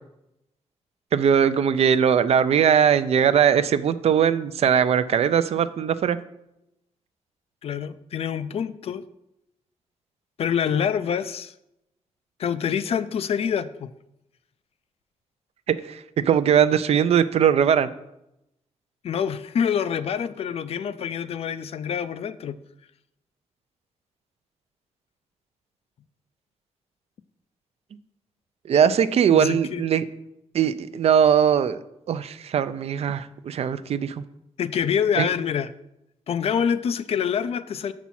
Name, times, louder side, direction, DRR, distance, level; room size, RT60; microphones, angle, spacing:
voice 1, 1.1-6.2 15.7-16.0 16.3-17.9 28.7-30.0 30.5-31.8 32.1-34.2 35.2-35.3, right 8 dB, 60° right, 13 dB, 0.4 m, -20 dB
voice 2, 7.6-9.0 10.4-11.5 12.4-13.9 19.0-22.6 29.3-29.8 34.6-35.7 36.3-37.9, left 8 dB, 55° left, 13 dB, 0.4 m, -26 dB
7.0 x 6.1 x 4.2 m, 0.85 s
cardioid pair, 115°, 12 cm